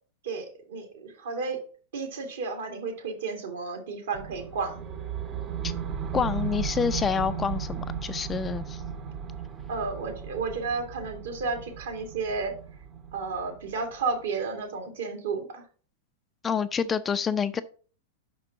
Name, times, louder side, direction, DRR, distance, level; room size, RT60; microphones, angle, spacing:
voice 1, 0.2-1.6 1.9-4.8 9.7-12.5 13.1-15.6, right 4 dB, 70° right, 3 dB, 2.1 m, -32 dB
sound 1, 4.1-14.2, right 7 dB, 35° right, 1.0 m, -36 dB
voice 2, 6.1-8.8 16.4-17.6, left 6 dB, 20° left, 11 dB, 0.5 m, -27 dB
5.7 x 5.3 x 5.5 m, 0.41 s
hypercardioid pair, 100°, 0 cm